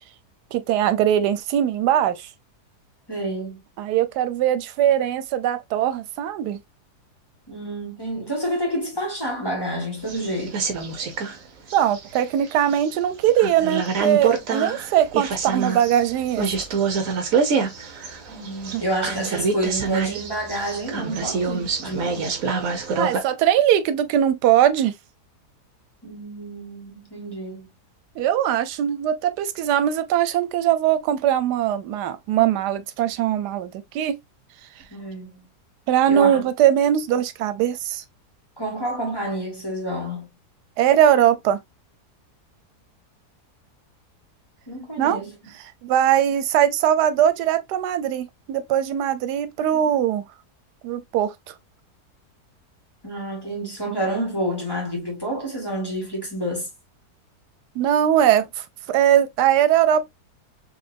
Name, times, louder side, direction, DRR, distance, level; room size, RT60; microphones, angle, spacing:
voice 1, 0.5-2.3 3.8-6.6 11.7-16.5 18.7-18.8 22.9-24.9 28.2-34.2 35.9-38.0 40.8-41.6 45.0-45.2 45.8-50.2 50.8-51.5 57.8-60.1, right 10 dB, 90° right, 1.2 m, -21 dB
voice 2, 3.1-3.6 7.5-10.6 18.3-22.3 26.0-27.7 34.9-35.4 36.1-36.5 38.6-40.3 44.7-45.3 53.0-56.7, right 1 dB, 15° left, 1.5 m, -29 dB
sound 1, 10.1-11.4 11.7-12.8 13.3-23.2, right 5 dB, 60° right, 1.3 m, -26 dB
4.4 x 3.1 x 2.5 m
omnidirectional pair, 1.7 m